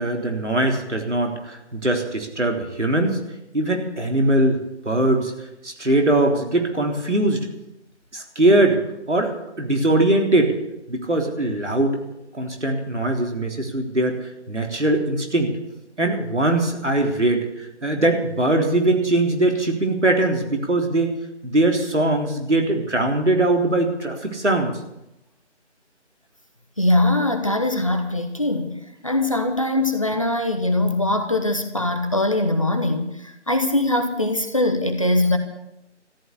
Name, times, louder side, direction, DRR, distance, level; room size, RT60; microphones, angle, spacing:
voice 1, 0.0-3.2 3.5-5.3 5.6-7.4 8.1-8.8 9.1-10.5 10.9-12.0 12.3-15.5 16.0-21.1 21.4-24.7, right 2 dB, 75° right, 3 dB, 3.6 m, -21 dB
voice 2, 26.8-35.4, left 2 dB, 30° left, 6 dB, 1.0 m, -22 dB
14.0 x 9.9 x 9.8 m, 0.88 s
figure-of-eight pair, 165°, 36 cm